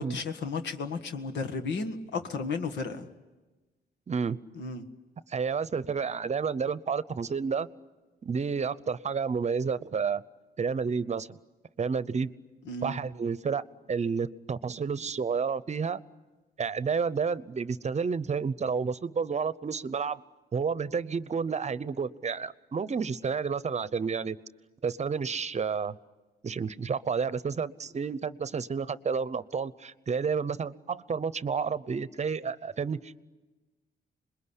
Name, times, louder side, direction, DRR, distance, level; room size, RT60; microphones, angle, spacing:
voice 1, 0.0-3.1 4.5-4.8 12.7-13.0, left 4 dB, 85° left, 5 dB, 1.8 m, -34 dB
voice 2, 4.1-4.4 5.3-7.7 8.2-10.2 10.6-11.4 11.8-12.3 12.8-13.6 13.9-16.0 16.6-20.2 20.5-24.4 24.8-25.9 26.4-33.2, right 5 dB, 40° right, 16 dB, 0.8 m, -30 dB
27.0 x 21.5 x 9.9 m, 1.2 s
cardioid pair, 90°, 18 cm